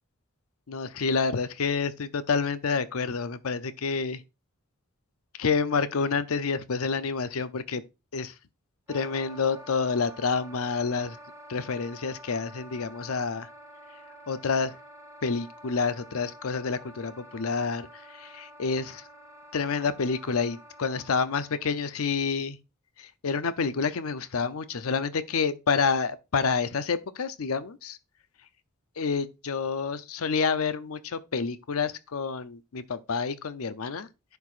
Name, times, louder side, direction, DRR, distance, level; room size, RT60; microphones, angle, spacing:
voice 1, 0.7-4.2 5.4-7.8 8.1-8.3 8.9-11.2 11.5-13.5 14.3-14.7 15.2-19.0 19.5-22.6 23.0-28.0 29.0-34.1, left 5 dB, 80° left, 0.6 m, -28 dB
Wind instrument woodwind instrument, 8.9-21.8, equal, 15° right, 1.2 m, -48 dB
11.0 x 4.6 x 2.5 m
head